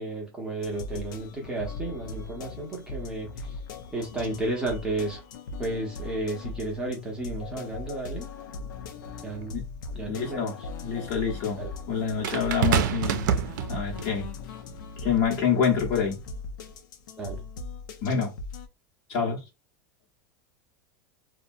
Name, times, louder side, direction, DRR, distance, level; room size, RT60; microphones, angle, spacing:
voice 1, 0.0-3.6 3.9-5.2 5.6-8.3 9.2-9.6 9.9-10.5 11.6-11.7 17.2-17.4, right 2 dB, 10° right, 0.6 m, -33 dB
sound 1, 0.6-18.7, left 3 dB, 85° left, 0.6 m, -39 dB
sound 2, 9.3-9.4 12.2-14.1 15.0-15.3, right 8 dB, 75° right, 0.4 m, -26 dB
voice 2, 10.0-10.6 10.8-13.3 13.7-14.3 15.0-16.2 18.0-18.3 19.1-19.4, left 6 dB, 45° left, 1.0 m, -27 dB
2.7 x 2.2 x 2.6 m
supercardioid pair, 160°, 10 cm